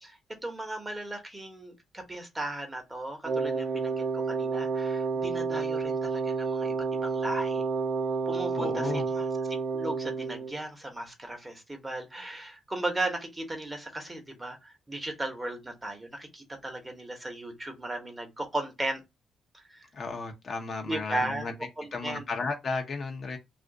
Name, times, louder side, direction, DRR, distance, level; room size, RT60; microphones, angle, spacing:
voice 1, 0.0-7.6 8.3-19.0 19.5-19.8 20.8-21.5 21.8-22.2, right 2 dB, 15° right, 1.0 m, -36 dB
Wind instrument woodwind instrument, 3.2-10.6, right 4 dB, 55° right, 0.8 m, -30 dB
voice 2, 8.5-9.0 19.9-21.5 21.9-23.4, left 4 dB, 45° left, 0.7 m, -34 dB
2.5 x 2.4 x 3.6 m
cardioid pair, 90°, 0 cm